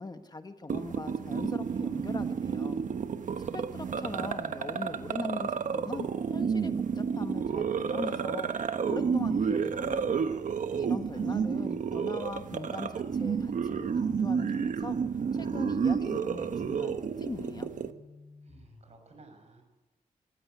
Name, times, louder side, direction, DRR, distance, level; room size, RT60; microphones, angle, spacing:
voice 1, 0.0-2.8 3.5-8.5 8.9-10.2 10.8-15.0 15.3-17.7, left 3 dB, 30° left, 8 dB, 1.2 m, -40 dB
sound 1, 0.7-17.9, right 6 dB, 70° right, 1.3 m, -31 dB
voice 2, 3.3-4.5 10.7-11.5 18.4-19.6, right 3 dB, 55° right, 6 dB, 6.1 m, -57 dB
sound 2, 9.1-19.1, left 2 dB, 60° left, 6.6 m, -55 dB
25.5 x 15.5 x 9.5 m, 1.2 s
wide cardioid pair, 95°, 14 cm